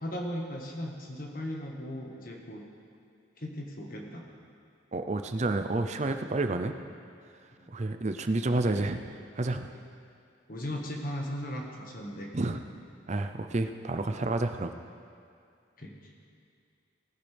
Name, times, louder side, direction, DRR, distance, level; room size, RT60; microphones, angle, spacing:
voice 1, 0.0-2.7 3.4-4.3 7.6-7.7 9.7-9.8 10.5-12.3 15.8-16.1, equal, 45° left, 0 dB, 1.5 m, -37 dB
voice 2, 4.9-6.7 7.7-9.0 9.4-9.6 12.3-12.6 13.1-14.7, right 2 dB, 35° right, 7 dB, 0.5 m, -29 dB
19.0 x 10.5 x 3.4 m, 2.4 s
head